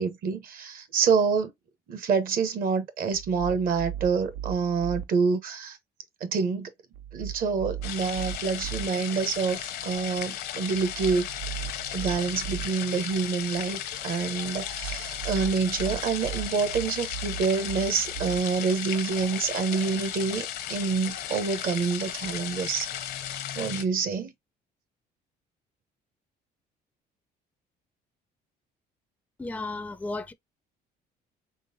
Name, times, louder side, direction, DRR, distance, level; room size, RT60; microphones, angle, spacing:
voice 1, 0.0-1.5 1.9-5.8 6.2-6.7 7.1-11.3 11.9-22.9 23.6-24.3, right 5 dB, 60° right, 1.0 m, -27 dB
sound 1, 3.1-5.0 6.9-8.9 10.7-12.7 14.6-18.4, right 10 dB, 85° right, 0.5 m, -37 dB
sound 2, 7.8-23.8, left 11 dB, 75° left, 0.7 m, -35 dB
voice 2, 29.4-30.3, left 2 dB, 10° left, 0.4 m, -34 dB
3.8 x 3.3 x 2.6 m
cardioid pair, 110°, 17 cm